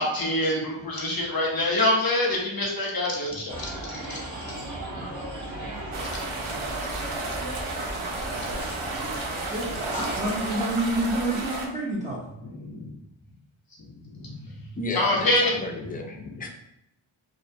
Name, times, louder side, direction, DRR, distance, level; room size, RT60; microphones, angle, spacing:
voice 1, 0.0-3.9 4.4-4.5 12.4-12.9 13.8-15.6 15.9-16.2, left 1 dB, 45° left, -2 dB, 0.7 m, -26 dB
sound 1, 3.5-10.5, right 1 dB, 35° right, 1.1 m, -36 dB
sound 2, 5.9-11.7, right 2 dB, 70° right, 0.6 m, -32 dB
voice 2, 9.5-12.2, right 1 dB, 15° right, -6 dB, 0.7 m, -28 dB
voice 3, 14.8-16.5, left 2 dB, 20° left, 2 dB, 0.4 m, -33 dB
2.6 x 2.0 x 2.6 m, 0.84 s
wide cardioid pair, 55°, 49 cm